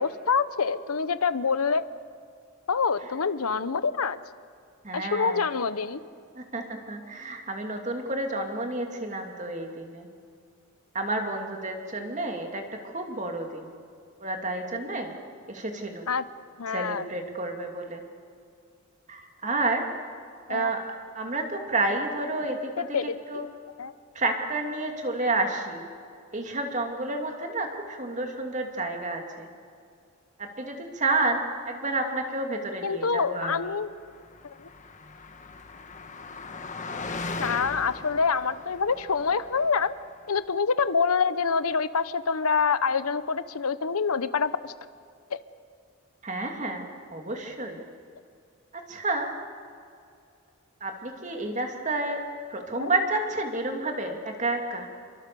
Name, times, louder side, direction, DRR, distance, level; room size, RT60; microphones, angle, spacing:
voice 1, 0.0-1.8 2.7-4.2 4.9-6.0 16.1-16.2 16.6-17.1 20.5-20.7 22.5-23.2 23.8-23.9 32.8-33.9 34.6-34.7 37.4-39.9 40.3-44.7 45.3-45.4 52.8-52.9, left 5 dB, 80° left, 14 dB, 0.9 m, -26 dB
voice 2, 4.8-5.5 6.3-10.1 10.9-13.7 14.2-15.1 15.5-16.0 16.7-18.0 19.1-19.8 20.5-20.8 21.1-23.4 24.1-25.9 26.3-29.5 30.4-33.6 46.2-47.8 48.7-49.3 50.8-52.2 52.5-54.9, right 2 dB, 35° right, 3 dB, 2.8 m, -30 dB
Car passing by, 34.1-40.1, left 3 dB, 35° left, 1.4 m, -39 dB
28.0 x 23.5 x 7.0 m, 2.4 s
head